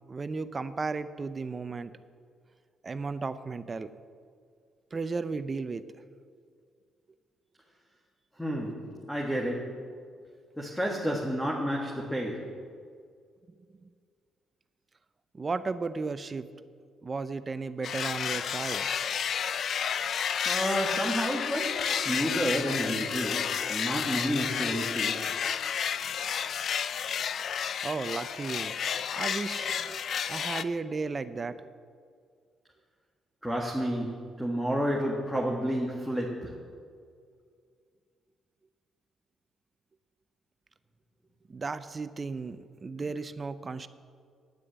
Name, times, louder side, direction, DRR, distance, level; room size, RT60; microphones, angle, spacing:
voice 1, 0.1-1.9 2.8-3.9 4.9-5.8 15.3-16.5 17.0-18.9 27.8-28.8 29.2-30.0 30.3-31.6 41.5-43.9, right 4 dB, 30° right, 13 dB, 0.6 m, -34 dB
voice 2, 8.4-9.9 10.6-12.6 20.4-25.4 33.4-36.6, equal, 5° left, -2 dB, 1.6 m, -31 dB
sound 1, 17.8-30.6, left 8 dB, 60° left, 0.4 m, -31 dB
9.8 x 9.7 x 8.0 m, 2.1 s
cardioid pair, 90°, 0 cm